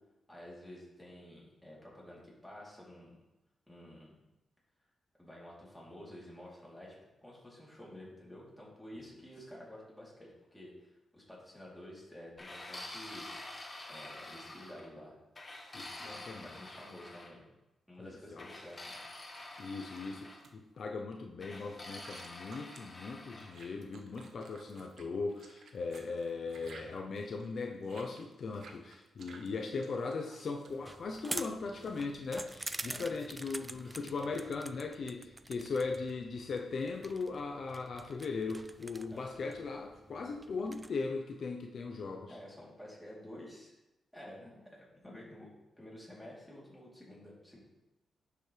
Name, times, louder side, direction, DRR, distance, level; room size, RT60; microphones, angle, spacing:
voice 1, 0.3-3.2 3.7-4.2 5.2-13.3 13.9-15.2 15.7-17.4 17.9-19.0 32.9-33.1 39.1-39.2 42.3-43.7 44.1-45.5 45.8-47.6, left 1 dB, ahead, -6 dB, 3.3 m, -51 dB
sound 1, 12.4-14.9 15.4-17.3 18.4-20.4 21.4-23.5, left 2 dB, 25° left, 1.6 m, -47 dB
voice 2, 15.7-16.8 18.0-18.5 19.6-42.4, left 4 dB, 55° left, 2 dB, 0.7 m, -39 dB
sound 2, 19.3-20.5 21.9-32.6, right 4 dB, 70° right, 1.0 m, -57 dB
sound 3, 30.7-40.9, right 2 dB, 15° right, 0.4 m, -46 dB
9.9 x 7.0 x 3.4 m, 0.97 s
cardioid pair, 105°, 0 cm